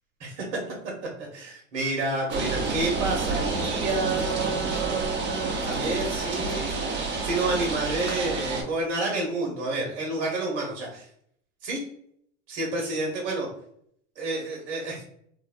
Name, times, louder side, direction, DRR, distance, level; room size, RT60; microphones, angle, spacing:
voice 1, 1.2-6.8 7.2-11.1 11.6-11.8 12.5-13.5 14.1-15.0, right 2 dB, 70° right, -2 dB, 1.2 m, -29 dB
sound 1, 2.3-8.6, right 3 dB, 30° right, 0.9 m, -29 dB
2.8 x 2.2 x 2.6 m, 0.67 s
hypercardioid pair, 90°, 36 cm